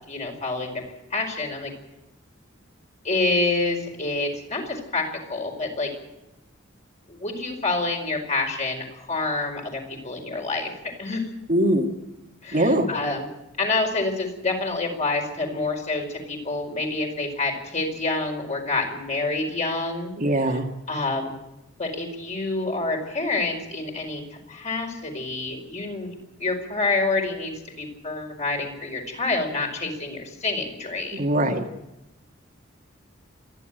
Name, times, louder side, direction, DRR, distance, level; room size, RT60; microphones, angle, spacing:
voice 1, 0.1-0.8 1.1-1.7 3.0-5.9 7.1-10.7 11.0-11.2 12.4-13.3 13.6-20.1 20.9-21.3 21.8-27.5 27.8-31.2, left 3 dB, 35° left, 2 dB, 4.9 m, -27 dB
voice 2, 11.5-11.9 12.5-12.9 20.2-20.7 31.1-31.7, right 1 dB, 45° right, 3 dB, 1.9 m, -21 dB
27.0 x 11.0 x 9.2 m, 0.94 s
head